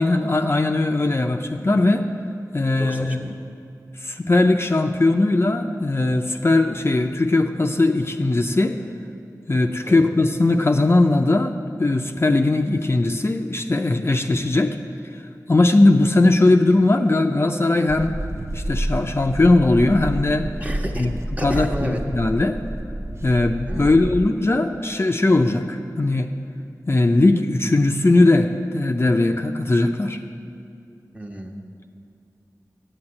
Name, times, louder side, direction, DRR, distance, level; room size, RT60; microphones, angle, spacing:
voice 1, 0.0-2.1 2.5-3.3 4.0-8.8 9.5-11.5 11.8-14.8 15.5-18.2 18.5-20.5 21.0-21.1 21.4-22.6 23.2-26.3 26.9-30.2, left 2 dB, 40° left, 4 dB, 0.5 m, -19 dB
voice 2, 2.8-3.3 9.8-10.0 20.6-21.1 21.4-22.0 23.7-24.0 31.1-31.5, right 1 dB, 20° right, 1 dB, 1.2 m, -32 dB
sound 1, 17.9-24.3, right 1 dB, 40° right, 0.6 m, -29 dB
8.0 x 7.9 x 8.7 m, 2.5 s
wide cardioid pair, 50°, 7 cm